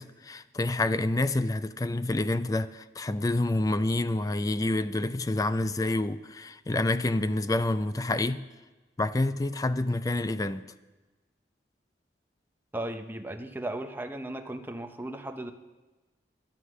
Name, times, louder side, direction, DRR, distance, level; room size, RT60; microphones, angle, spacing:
voice 1, 0.0-8.4 9.0-10.6, left 2 dB, 20° left, 13 dB, 0.4 m, -28 dB
voice 2, 12.7-15.5, right 1 dB, 10° right, 5 dB, 0.7 m, -36 dB
11.0 x 10.0 x 6.2 m, 1.2 s
head